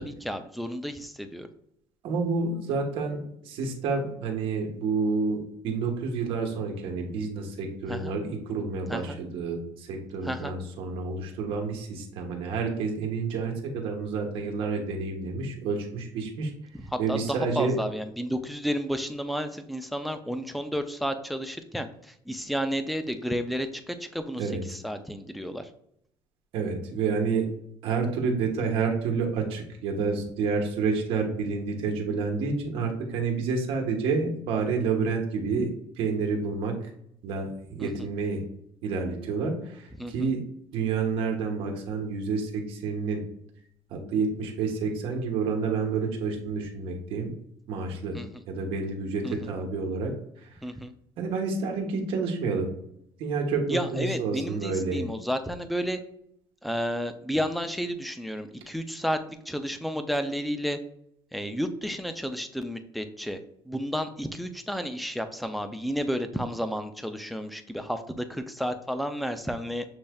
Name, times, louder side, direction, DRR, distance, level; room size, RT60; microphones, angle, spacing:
voice 1, 0.0-1.5 7.9-8.1 8.9-9.2 10.2-10.5 16.9-25.7 37.8-38.1 40.0-40.3 48.1-48.4 49.2-49.4 50.6-50.9 53.7-56.0 56.6-59.2 59.5-60.8 61.3-63.4 63.7-69.9, equal, ahead, 8 dB, 0.4 m, -32 dB
voice 2, 2.0-16.5 17.0-17.8 24.4-24.6 26.5-27.5 27.8-35.7 36.0-36.8 37.2-38.4 38.8-40.4 40.7-43.2 43.9-47.3 47.7-48.2 48.5-50.1 50.4-50.5 51.2-52.7 53.2-55.1, right 4 dB, 70° right, 2 dB, 1.2 m, -29 dB
6.9 x 3.2 x 2.3 m, 0.72 s
cardioid pair, 140°, 10 cm